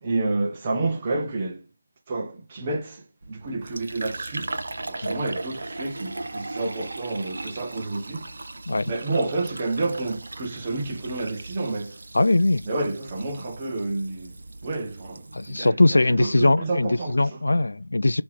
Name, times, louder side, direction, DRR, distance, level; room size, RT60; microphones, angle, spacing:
voice 1, 0.0-1.7 2.1-4.5 4.9-8.5 8.9-12.0 12.6-14.4 14.6-17.4, right 2 dB, 20° right, 0.9 m, -29 dB
Fill (with liquid), 3.2-15.7, right 2 dB, 50° right, 0.7 m, -38 dB
voice 2, 12.1-12.6 15.3-18.2, left 2 dB, 65° left, 0.4 m, -21 dB
3.7 x 3.0 x 4.7 m
figure-of-eight pair, 170°, 0 cm